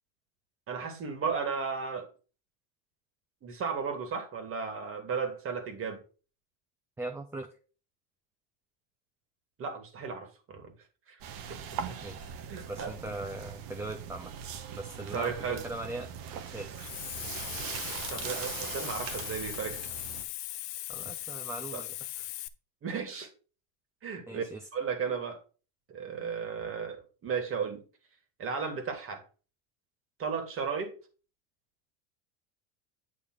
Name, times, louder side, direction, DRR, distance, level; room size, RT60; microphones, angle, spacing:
voice 1, 0.7-2.1 3.4-6.0 9.6-10.7 11.1-11.2 11.5-12.2 12.5-12.9 15.1-15.6 18.1-19.8 21.7-21.8 22.8-23.3 24.0-24.4 24.7-25.4 25.9-27.8 28.4-29.2 30.2-31.0, right 5 dB, 35° right, 2.1 m, -35 dB
voice 2, 7.0-7.5 12.0-12.3 12.7-14.3 14.7-16.1 16.5-16.7 20.9-22.3 24.3-24.7, right 2 dB, 5° right, 0.6 m, -40 dB
sound 1, 11.2-20.2, right 8 dB, 60° right, 1.2 m, -41 dB
Hiss, 16.7-22.5, left 16 dB, 75° left, 0.8 m, -39 dB
9.1 x 3.1 x 6.1 m
supercardioid pair, 125°, 38 cm